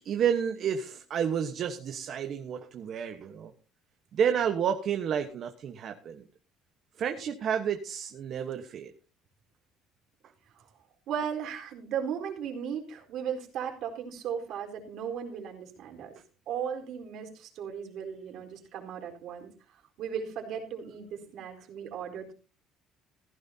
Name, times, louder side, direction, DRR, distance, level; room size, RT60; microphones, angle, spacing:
voice 1, 0.0-3.5 4.1-6.2 7.0-8.9, right 8 dB, 45° right, 6 dB, 1.2 m, -30 dB
voice 2, 11.1-16.1 16.5-19.5 20.0-22.3, right 8 dB, 60° right, 2 dB, 4.2 m, -36 dB
16.0 x 15.0 x 2.8 m, 0.35 s
cardioid pair, 145°, 0 cm